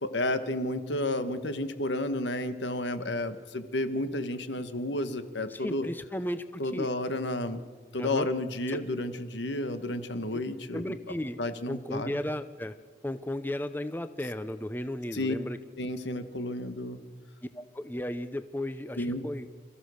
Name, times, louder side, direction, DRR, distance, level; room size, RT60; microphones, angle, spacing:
voice 1, 0.0-5.9 6.6-7.6 7.9-11.0 11.4-12.1 15.1-15.3 15.8-17.1 19.0-19.3, left 1 dB, 80° left, 10 dB, 1.5 m, -31 dB
voice 2, 5.5-6.9 8.0-8.3 8.7-8.8 10.7-12.8 13.0-15.6 17.5-19.5, left 1 dB, 10° left, 11 dB, 0.6 m, -35 dB
28.0 x 14.5 x 6.5 m, 1.5 s
head